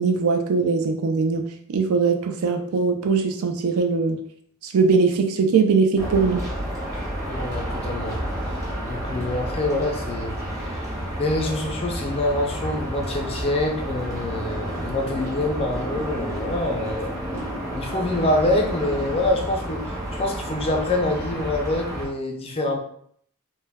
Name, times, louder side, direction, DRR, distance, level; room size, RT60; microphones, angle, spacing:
voice 1, 0.0-1.4 1.7-4.2 4.6-6.4, right 4 dB, 75° right, 5 dB, 0.4 m, -21 dB
sound 1, 6.0-22.1, equal, 15° right, 0.7 m, -30 dB
voice 2, 7.3-17.2 17.8-22.8, left 1 dB, 25° left, 2 dB, 0.3 m, -26 dB
2.2 x 2.1 x 3.3 m, 0.65 s
head